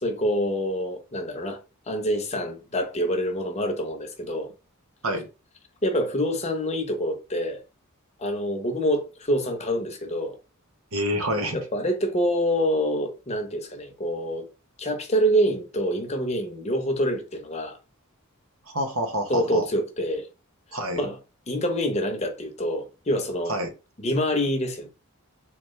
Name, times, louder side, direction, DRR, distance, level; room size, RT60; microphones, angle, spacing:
voice 1, 0.0-1.6 1.9-4.5 5.8-7.6 8.2-10.3 11.5-14.5 14.8-17.8 19.3-20.3 21.0-21.2 21.5-23.5 24.0-24.9, equal, 30° left, 0.9 m, -26 dB
voice 2, 10.9-11.6 18.7-19.7 20.7-21.0 23.5-23.7, equal, 70° right, 1.1 m, -27 dB
4.1 x 3.0 x 3.2 m
head